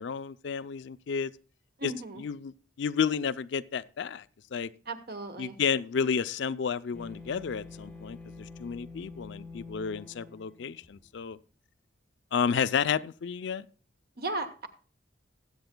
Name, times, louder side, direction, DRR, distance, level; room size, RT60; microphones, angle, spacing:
voice 1, 0.0-1.3 1.8-4.2 4.5-4.7 5.4-11.4 12.3-13.6, left 6 dB, 65° left, 0.4 m, -31 dB
voice 2, 1.8-2.2 4.9-5.6 14.2-14.7, right 2 dB, 50° right, 1.1 m, -35 dB
sound 1, 6.9-11.2, left 3 dB, 5° left, 0.7 m, -46 dB
20.5 x 8.0 x 2.2 m
head